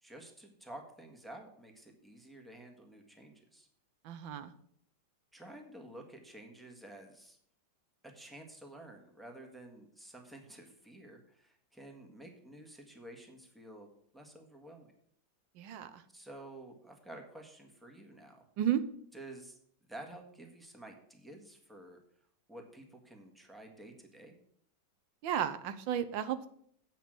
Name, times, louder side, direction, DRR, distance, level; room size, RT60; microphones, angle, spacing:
voice 1, 0.0-3.7 5.3-7.4 8.0-14.9 16.1-18.4 19.1-19.6 19.9-22.0 22.5-24.4, right 1 dB, ahead, 2 dB, 1.3 m, -51 dB
voice 2, 4.0-4.5 15.6-16.0 18.6-18.8 25.2-26.5, right 10 dB, 90° right, 12 dB, 1.5 m, -33 dB
8.5 x 5.9 x 7.7 m, 0.64 s
omnidirectional pair, 2.0 m